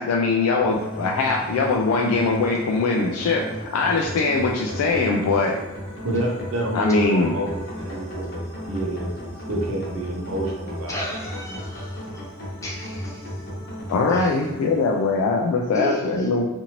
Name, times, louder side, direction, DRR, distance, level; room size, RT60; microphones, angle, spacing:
voice 1, 0.0-3.5 3.7-5.6 6.7-7.3 13.9-16.5, left 3 dB, 80° left, 0 dB, 0.3 m, -21 dB
sound 1, 0.6-15.7, equal, 50° left, 0.9 m, -35 dB
voice 2, 6.0-8.4 8.7-9.1 9.5-11.1, right 1 dB, 65° right, -1 dB, 0.6 m, -28 dB
voice 3, 10.9-12.2 12.6-13.2 14.1-14.3 15.7-16.3, equal, 15° left, -4 dB, 0.6 m, -32 dB
2.8 x 2.5 x 2.8 m, 1.1 s
head